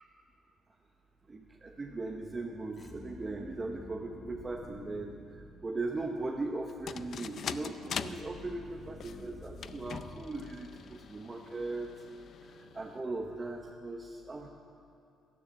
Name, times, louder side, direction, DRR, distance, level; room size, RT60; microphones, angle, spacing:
voice 1, 1.3-5.1 5.6-11.9 12.5-14.5, right 2 dB, 25° right, 1 dB, 0.9 m, -38 dB
sound 1, 2.7-6.0 8.1-11.3, left 2 dB, 30° left, 1.3 m, -50 dB
sound 2, 6.7-13.8, left 7 dB, 55° left, 0.4 m, -44 dB
13.0 x 10.0 x 6.8 m, 2.7 s
cardioid pair, 95°, 0 cm